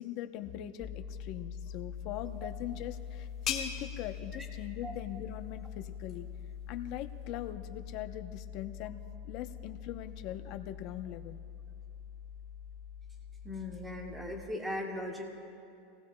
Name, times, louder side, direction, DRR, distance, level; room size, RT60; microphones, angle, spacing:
voice 1, 0.0-6.3 6.7-9.0 9.3-11.4, left 12 dB, 45° left, 8 dB, 0.7 m, -41 dB
sound 1, 0.8-14.4, left 8 dB, 10° left, 1.1 m, -44 dB
sound 2, 2.1-7.5, left 8 dB, 30° left, 1.6 m, -43 dB
voice 2, 13.4-15.2, left 1 dB, 10° right, 0 dB, 1.7 m, -38 dB
30.0 x 19.0 x 2.2 m, 2.6 s
supercardioid pair, 160°, 0 cm